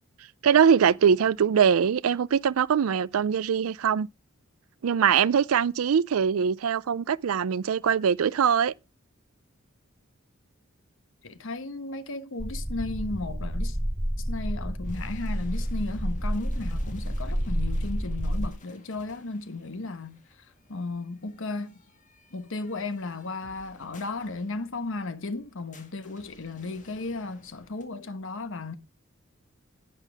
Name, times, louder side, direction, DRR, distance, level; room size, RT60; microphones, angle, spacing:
voice 1, 0.4-4.1 4.8-8.7, right 7 dB, 80° right, 0.4 m, -22 dB
voice 2, 11.2-13.8 14.3-20.2 20.7-21.7 22.3-28.7, left 3 dB, 65° left, 1.1 m, -35 dB
sound 1, 12.4-18.5, equal, 5° right, 0.5 m, -30 dB
sound 2, 14.8-27.8, left 3 dB, 40° left, 2.0 m, -56 dB
11.0 x 9.1 x 3.4 m
head